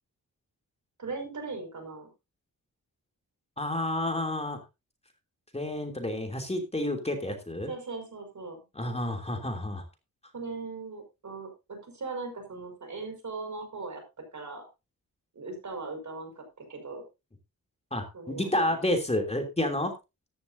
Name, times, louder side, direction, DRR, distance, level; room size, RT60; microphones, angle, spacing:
voice 1, 1.0-2.1 7.7-8.6 10.3-14.7 15.3-17.0 18.1-18.5, right 3 dB, 55° right, 5 dB, 5.5 m, -39 dB
voice 2, 3.6-4.6 5.5-7.7 8.7-9.8 17.9-19.9, left 1 dB, 15° left, 4 dB, 3.1 m, -30 dB
14.0 x 12.0 x 2.8 m, 0.26 s
cardioid pair, 90°, 35 cm